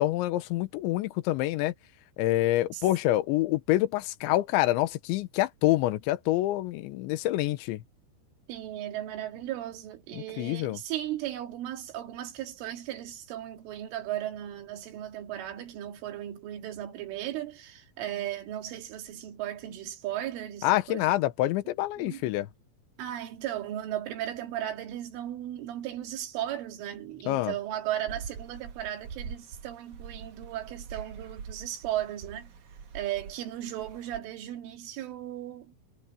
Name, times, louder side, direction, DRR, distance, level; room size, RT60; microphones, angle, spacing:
voice 1, 0.0-1.7 2.2-7.8 10.4-10.8 20.6-22.5 27.3-27.5, left 16 dB, 75° left, 3.2 m, -26 dB
voice 2, 8.5-21.1 22.0-22.3 23.0-32.5 32.9-35.8, right 12 dB, 75° right, 4.7 m, -36 dB
sound 1, 28.1-34.2, right 6 dB, 50° right, 2.4 m, -44 dB
omnidirectional pair, 5.8 m